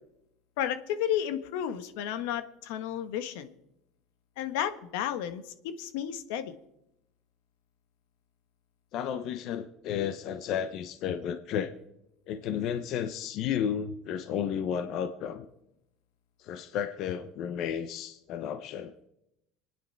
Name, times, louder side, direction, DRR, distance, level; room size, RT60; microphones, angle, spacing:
voice 1, 0.6-3.5 4.4-6.5, left 10 dB, 80° left, 10 dB, 1.2 m, -32 dB
voice 2, 8.9-11.7 12.3-15.5 16.4-18.9, left 9 dB, 50° left, 9 dB, 0.8 m, -32 dB
27.0 x 9.6 x 4.6 m, 0.85 s
cardioid pair, 155°, 0 cm